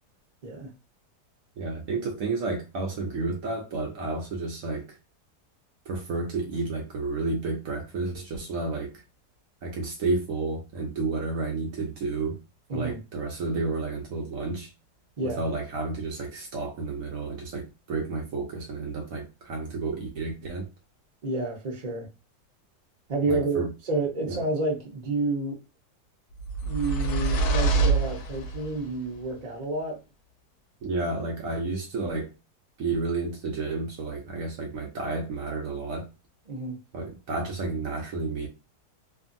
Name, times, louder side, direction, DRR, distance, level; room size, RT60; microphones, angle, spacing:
voice 1, 1.6-5.0 5.9-9.0 9.6-12.4 12.7-14.7 15.2-20.7 23.2-23.7 24.2-24.4 30.8-32.3 32.8-36.1 36.9-38.5, right 3 dB, 65° right, 0.9 m, -31 dB
voice 2, 21.2-22.1 23.1-25.6 26.6-30.0 36.5-36.8, right 2 dB, 35° right, 0.7 m, -29 dB
sound 1, 26.4-28.8, right 4 dB, 75° left, 1.0 m, -25 dB
2.6 x 2.6 x 2.5 m
omnidirectional pair, 1.7 m